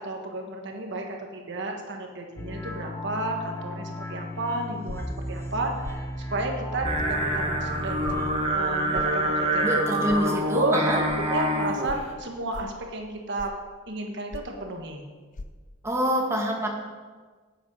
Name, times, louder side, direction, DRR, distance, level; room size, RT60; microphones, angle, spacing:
voice 1, 0.0-8.1 8.5-9.7 10.2-10.9 11.3-13.5 13.9-15.1, right 2 dB, 60° right, 2 dB, 1.4 m, -32 dB
sound 1, 2.4-8.3, equal, 10° left, 0.8 m, -35 dB
sound 2, 4.9-5.2 5.8-6.1 7.0-7.1 8.0-8.2 8.9-9.2 10.1-10.2 11.1-11.2 11.9-12.1 12.5-12.8 13.4-13.6 14.3-14.6 15.3-15.5, left 2 dB, 40° left, 0.6 m, -39 dB
Singing, 6.8-12.0, right 1 dB, 30° right, 1.4 m, -26 dB
voice 2, 9.6-11.0 15.8-16.7, right 1 dB, 15° right, -1 dB, 1.5 m, -26 dB
9.9 x 8.4 x 5.4 m, 1.4 s
head